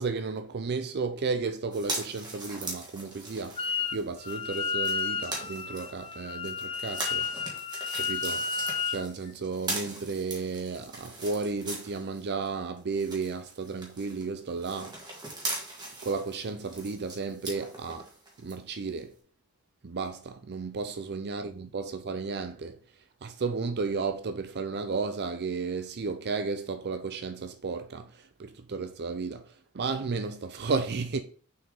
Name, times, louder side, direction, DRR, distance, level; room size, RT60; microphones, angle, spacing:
voice 1, 0.0-7.6 7.9-8.5 8.9-15.0 16.0-18.1 18.4-19.1 19.8-22.8 23.2-31.2, right 4 dB, 50° right, 0.5 m, -33 dB
sound 1, 1.7-12.5 12.8-18.5 19.0-19.1, right 2 dB, 20° right, 1.8 m, -40 dB
Wind instrument woodwind instrument, 3.6-4.0 4.2-9.1, left 5 dB, 25° left, 0.4 m, -32 dB
6.4 x 4.5 x 3.9 m
head